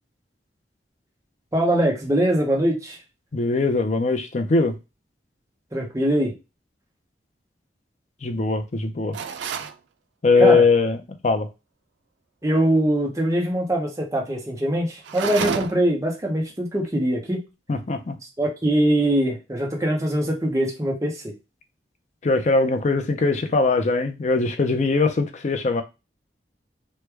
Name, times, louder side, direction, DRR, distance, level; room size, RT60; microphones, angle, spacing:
voice 1, 1.5-3.0 5.7-6.3 10.4-10.6 12.4-17.4 18.4-21.3, right 1 dB, 20° right, 0.8 m, -22 dB
voice 2, 3.3-4.8 8.2-9.2 10.2-11.5 17.7-18.1 22.2-25.8, left 3 dB, 40° left, 0.5 m, -21 dB
sound 1, 9.1-9.8 15.0-16.0, right 7 dB, 90° right, 0.4 m, -29 dB
3.1 x 2.3 x 3.3 m
head